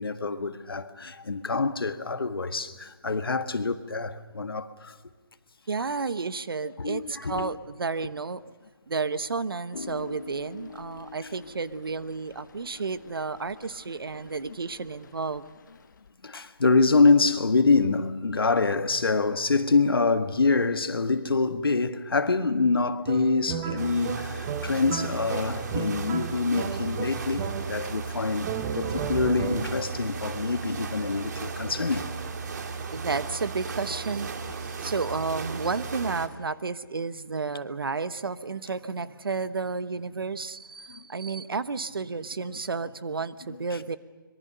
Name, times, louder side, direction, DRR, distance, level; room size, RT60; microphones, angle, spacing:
voice 1, 0.0-4.9 6.8-7.6 16.2-28.5 28.7-32.1 40.9-41.0, left 4 dB, 80° left, 1.6 m, -25 dB
voice 2, 5.7-8.4 8.9-15.4 32.9-34.3 34.8-44.0, right 4 dB, 75° right, 1.1 m, -32 dB
sound 1, 9.7-16.1, left 5 dB, 55° left, 1.1 m, -46 dB
sound 2, 23.0-28.0 28.4-30.0, right 7 dB, 25° right, 1.3 m, -34 dB
sound 3, 23.8-36.3, right 5 dB, 50° right, 2.3 m, -35 dB
25.5 x 22.5 x 6.8 m
figure-of-eight pair, 150°, 12 cm